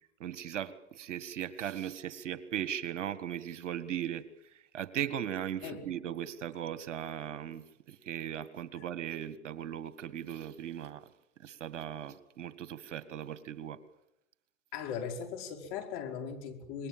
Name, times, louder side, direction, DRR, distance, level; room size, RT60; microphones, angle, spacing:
voice 1, 0.2-4.2 4.5-11.1 11.4-13.8, right 10 dB, 70° right, 14 dB, 1.9 m, -38 dB
voice 2, 14.7-16.9, left 7 dB, 55° left, 5 dB, 4.9 m, -39 dB
26.5 x 21.5 x 7.6 m, 0.83 s
hypercardioid pair, 105°, 37 cm